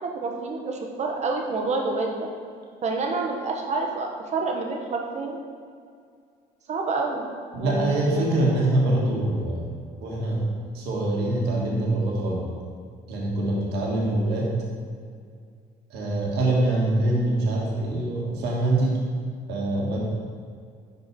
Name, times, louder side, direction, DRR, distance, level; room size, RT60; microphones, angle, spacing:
voice 1, 0.0-2.3 2.8-5.4 6.7-7.3 7.6-8.4, right 3 dB, 40° right, 2 dB, 1.0 m, -28 dB
voice 2, 7.5-9.7 10.0-10.5 10.7-12.5 13.1-14.5 15.9-19.0 19.5-20.0, right 1 dB, 80° right, -3 dB, 1.5 m, -24 dB
5.6 x 5.2 x 4.6 m, 2.2 s
cardioid pair, 110°, 17 cm